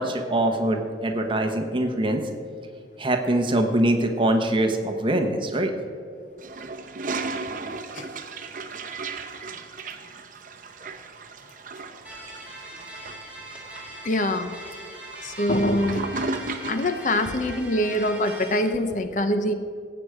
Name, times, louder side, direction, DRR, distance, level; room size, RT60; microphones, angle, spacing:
voice 1, 0.0-2.3 3.0-5.7 10.8-10.9, right 1 dB, 30° right, 4 dB, 1.1 m, -23 dB
Toilet flush, 6.4-17.0, right 3 dB, 45° right, 0.8 m, -36 dB
sound 1, 12.0-18.6, right 1 dB, 10° right, 2.2 m, -41 dB
voice 2, 14.0-14.5 15.2-16.0 16.7-19.5, left 1 dB, 45° left, 8 dB, 0.7 m, -24 dB
17.0 x 8.0 x 4.9 m, 2.3 s
head